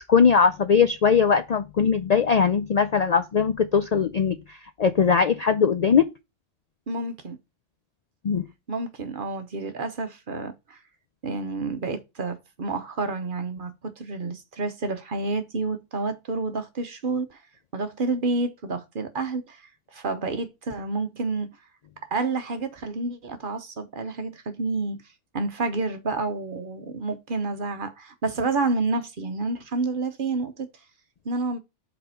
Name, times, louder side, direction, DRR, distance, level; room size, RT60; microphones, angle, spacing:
voice 1, 0.1-6.1 8.2-8.4, left 6 dB, 85° left, 0.3 m, -20 dB
voice 2, 6.9-7.4 8.7-10.8 11.2-17.4 17.7-19.6 19.9-21.5 22.1-25.0 25.3-30.7 31.2-31.6, right 3 dB, 45° right, 0.9 m, -29 dB
5.3 x 4.2 x 5.5 m
omnidirectional pair, 1.3 m